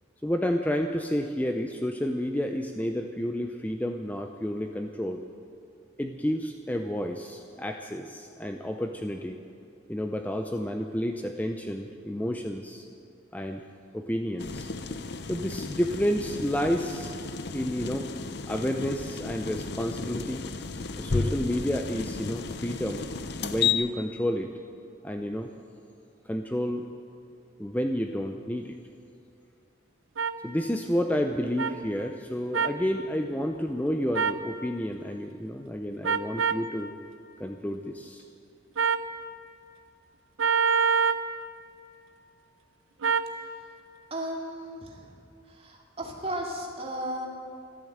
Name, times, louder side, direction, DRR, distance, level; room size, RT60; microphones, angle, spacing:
voice 1, 0.2-5.2 6.0-9.4 9.9-12.9 13.3-13.6 13.9-14.7 15.3-17.2 17.5-18.1 18.5-20.5 21.0-23.0 23.4-24.5 25.0-25.5 26.2-26.8 27.6-28.8 30.4-36.9 37.4-38.2, equal, 10° left, 5 dB, 0.5 m, -30 dB
sound 1, 14.4-23.7, left 5 dB, 55° left, 0.7 m, -33 dB
sound 2, 30.2-30.3 31.6-31.7 32.5-32.8 34.1-34.4 36.0-36.6 38.8-39.1 40.4-41.2 43.0-43.3, right 5 dB, 90° right, 0.7 m, -25 dB
voice 2, 44.1-45.1 45.6-47.3, right 1 dB, 30° right, 0 dB, 2.4 m, -34 dB
14.0 x 12.5 x 7.9 m, 2.6 s
head